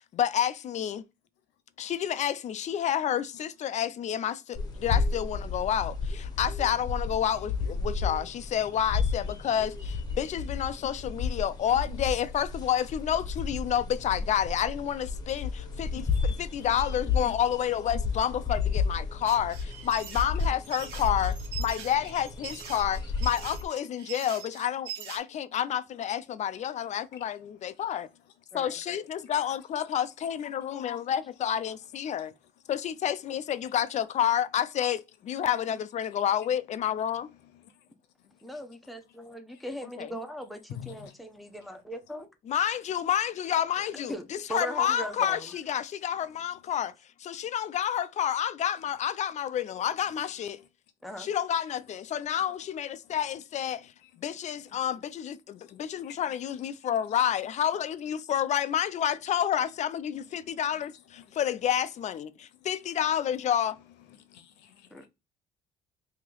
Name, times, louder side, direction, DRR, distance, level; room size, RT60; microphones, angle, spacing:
voice 1, 0.1-1.0 1.8-28.1 28.5-32.3 32.7-37.3 40.0-40.1 42.5-46.9 47.2-50.6 51.2-53.9 54.2-63.8, left 9 dB, 45° left, 0.4 m, -29 dB
sound 1, 4.6-23.7, left 5 dB, 25° left, 1.0 m, -32 dB
voice 2, 15.9-16.2 16.6-16.7 27.1-27.2 30.8-30.9 37.4-37.9 38.2-38.4 39.6-39.7 40.7-41.1 53.0-53.2 54.0-54.8 55.7-56.2 56.8-56.9 60.3-60.6 61.2-61.4 62.5-62.7 64.1-65.1, left 10 dB, 90° left, 0.8 m, -49 dB
sound 2, 19.3-25.2, right 8 dB, 80° right, 1.0 m, -42 dB
voice 3, 38.4-42.3 43.9-45.5 51.0-51.3 64.9-65.1, equal, ahead, 0.8 m, -39 dB
3.0 x 2.8 x 3.8 m
cardioid pair, 110°, 17 cm